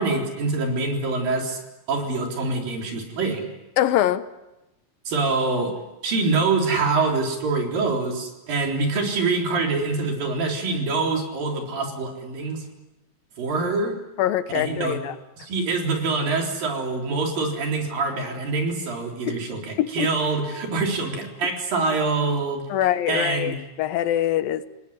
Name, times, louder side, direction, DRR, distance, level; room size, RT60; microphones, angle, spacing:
voice 1, 0.0-1.6 1.9-3.5 5.1-5.7 6.0-12.6 13.4-14.0 14.5-15.0 15.4-22.6 23.1-23.5, right 3 dB, 80° right, 5.6 m, -25 dB
voice 2, 3.8-4.3 14.2-15.2 19.3-19.4 19.8-20.1 22.7-24.7, left 12 dB, 90° left, 2.8 m, -23 dB
28.5 x 19.0 x 9.8 m
omnidirectional pair, 4.0 m